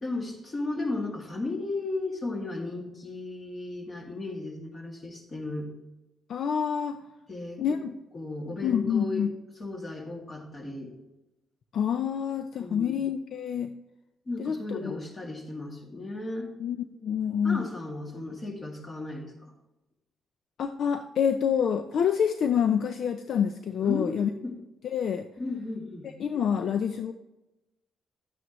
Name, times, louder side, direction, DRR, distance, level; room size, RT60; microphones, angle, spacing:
voice 1, 0.0-5.7 7.3-7.8 8.1-9.3 9.6-10.9 12.6-13.0 14.3-16.5 17.4-19.5 23.8-24.6 25.4-26.1, left 2 dB, 35° left, 1 dB, 2.3 m, -35 dB
voice 2, 6.3-7.0 7.6-8.0 8.6-9.3 11.7-13.7 14.4-15.0 16.6-17.7 20.6-24.3 24.9-25.3 26.2-27.1, left 8 dB, 65° left, 8 dB, 0.5 m, -27 dB
11.0 x 9.1 x 3.0 m, 0.98 s
cardioid pair, 95°, 0 cm